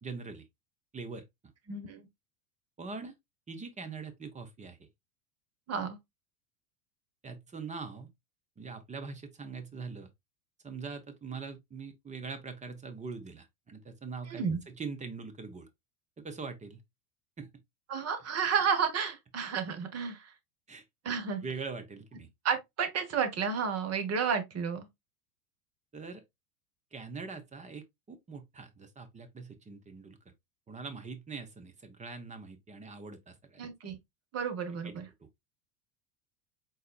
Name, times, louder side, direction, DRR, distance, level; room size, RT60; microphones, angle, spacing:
voice 1, 0.0-0.4 0.9-1.2 2.8-3.2 3.5-4.9 7.2-8.1 8.6-10.1 10.6-15.7 16.2-16.8 17.4-17.5 20.7-20.8 21.4-22.3 25.9-26.2 26.9-30.2 30.7-33.6 34.8-35.3, right 4 dB, 15° right, 0.8 m, -42 dB
voice 2, 1.7-2.0 5.7-6.0 14.3-14.6 17.9-20.3 21.0-21.4 22.4-24.9 33.6-34.0 34.3-35.1, right 6 dB, 30° right, 1.3 m, -31 dB
4.1 x 4.0 x 2.4 m
hypercardioid pair, 95°, 48 cm